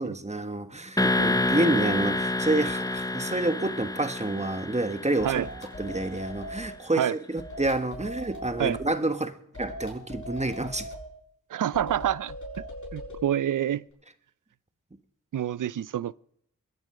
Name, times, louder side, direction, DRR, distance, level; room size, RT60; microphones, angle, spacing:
voice 1, 0.0-5.4 5.8-10.9, right 2 dB, 20° right, 1.5 m, -28 dB
sound 1, 1.0-5.9, left 2 dB, 10° left, 0.7 m, -28 dB
sound 2, 5.2-6.7 7.4-8.9 9.5-11.1 11.7-13.2, equal, 70° left, 7.7 m, -40 dB
voice 2, 11.5-12.4 12.9-13.8 15.3-16.1, right 10 dB, 85° right, 0.5 m, -27 dB
22.0 x 10.5 x 5.0 m
cardioid pair, 40°, 30 cm